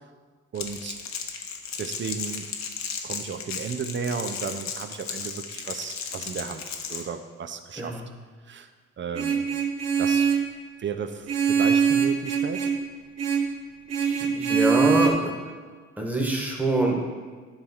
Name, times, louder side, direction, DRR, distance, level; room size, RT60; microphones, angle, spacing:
Crackle, 0.5-7.0, left 6 dB, 65° left, 1.0 m, -35 dB
voice 1, 0.5-1.0 1.8-2.5 3.0-8.0 8.5-8.7 9.0-9.5 10.0-10.3 10.8-12.7, right 6 dB, 40° right, 8 dB, 0.7 m, -34 dB
Vehicle horn car horn honking, 9.1-10.5 11.3-12.8 13.2-13.5 13.9-15.1, right 6 dB, 55° right, 1.1 m, -23 dB
voice 2, 14.0-15.3 16.0-17.0, right 1 dB, 5° right, -1 dB, 1.6 m, -25 dB
10.5 x 3.5 x 5.7 m, 1.5 s
cardioid pair, 90°, 30 cm